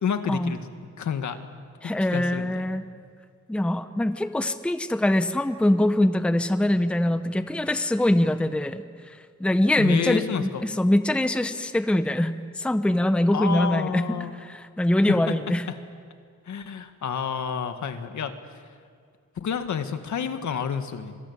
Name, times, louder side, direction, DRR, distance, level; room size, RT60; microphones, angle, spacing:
voice 1, 0.0-0.7 1.0-1.4 2.1-2.6 9.8-10.7 13.3-14.3 15.1-15.3 15.7-15.8 16.4-18.3 19.3-21.2, left 7 dB, 70° left, 8 dB, 1.9 m, -29 dB
voice 2, 1.8-2.9 3.5-15.7, left 1 dB, 5° left, 10 dB, 0.8 m, -23 dB
26.5 x 22.5 x 9.7 m, 2.1 s
wide cardioid pair, 180°, 30 cm